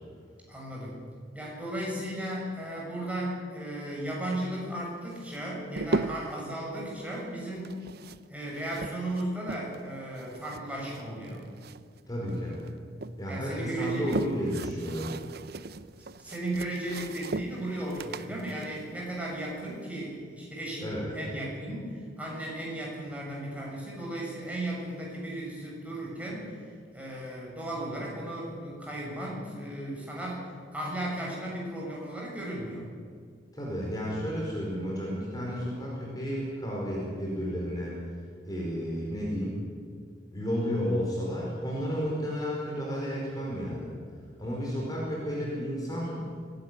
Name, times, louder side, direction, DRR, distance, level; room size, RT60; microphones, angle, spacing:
voice 1, 0.5-1.0 1.3-7.8 8.3-11.5 13.3-14.2 16.2-32.9, right 1 dB, 10° right, -4 dB, 7.1 m, -35 dB
sound 1, 5.1-6.4 7.5-9.9 10.2-12.0 12.3-13.2 13.7-19.8, right 2 dB, 60° right, 0.7 m, -37 dB
voice 2, 12.1-12.6 13.2-15.1 20.8-21.1 33.5-37.9 38.4-39.6 40.3-44.0 44.4-46.3, equal, 20° left, -4 dB, 5.0 m, -32 dB
24.5 x 12.0 x 9.9 m, 2.1 s
head